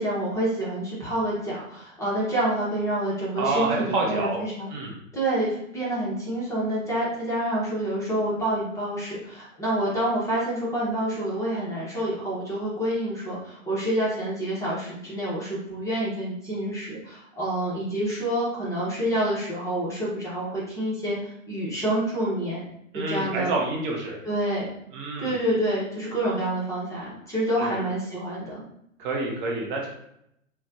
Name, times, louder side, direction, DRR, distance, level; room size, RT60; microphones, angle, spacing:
voice 1, 0.0-4.7 5.1-22.6 22.9-23.6 24.2-24.7 25.2-28.6, right 1 dB, 10° left, -7 dB, 0.7 m, -28 dB
voice 2, 3.4-4.4 4.7-5.0 22.9-24.2 24.9-25.3 27.6-27.8 29.0-29.9, right 3 dB, 35° right, -1 dB, 0.6 m, -28 dB
4.1 x 2.2 x 2.3 m, 0.75 s
hypercardioid pair, 125°, 41 cm